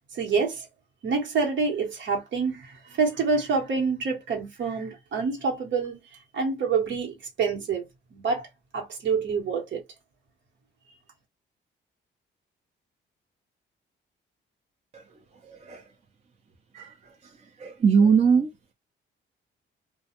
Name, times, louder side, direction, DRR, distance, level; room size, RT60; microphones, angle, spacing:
voice 1, 0.1-0.7 1.0-6.0 6.3-7.8 8.1-8.5 8.7-9.8, right 5 dB, 65° right, 1.2 m, -27 dB
voice 2, 15.5-15.8 16.7-16.9 17.6-18.5, right 6 dB, 35° right, 0.7 m, -21 dB
2.3 x 2.2 x 2.8 m
cardioid pair, 90°, 20 cm